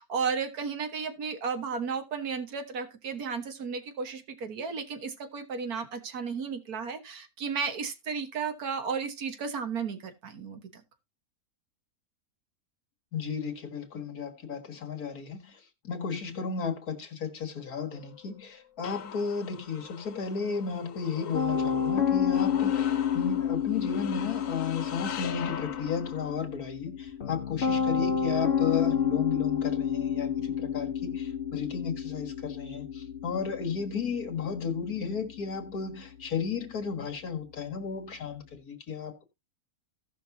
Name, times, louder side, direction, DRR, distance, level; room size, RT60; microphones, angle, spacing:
voice 1, 0.0-10.8, right 5 dB, 85° right, 1.9 m, -34 dB
voice 2, 13.1-15.6 15.8-39.2, left 6 dB, 80° left, 2.3 m, -34 dB
sound 1, 17.9-26.4, left 8 dB, 65° left, 1.1 m, -42 dB
Piano, 21.3-38.5, left 8 dB, 50° left, 1.4 m, -31 dB
17.0 x 6.0 x 2.7 m
omnidirectional pair, 1.6 m